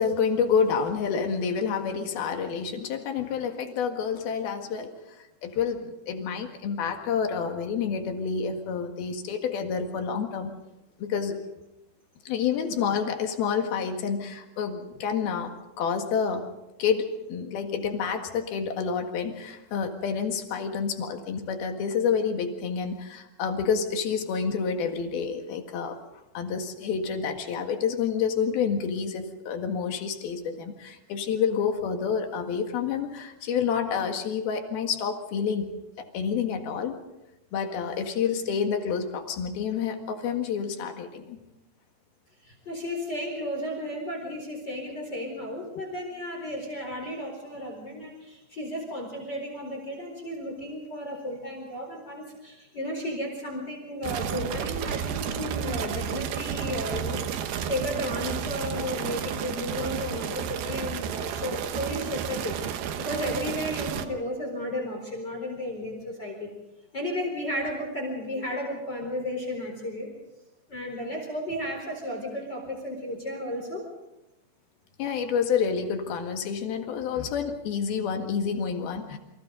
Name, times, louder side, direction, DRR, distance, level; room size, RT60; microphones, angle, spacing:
voice 1, 0.0-4.9 5.4-10.6 11.0-11.4 12.3-15.5 15.8-16.5 16.8-26.0 26.4-35.7 36.0-37.0 37.5-41.4 75.0-79.2, left 6 dB, 70° left, 4 dB, 3.6 m, -28 dB
voice 2, 42.4-66.5 66.9-70.1 70.7-73.9, left 1 dB, 25° left, 1 dB, 4.5 m, -33 dB
sound 1, 54.0-64.1, right 8 dB, 75° right, 3.0 m, -32 dB
28.5 x 25.0 x 3.9 m, 0.93 s
omnidirectional pair, 4.7 m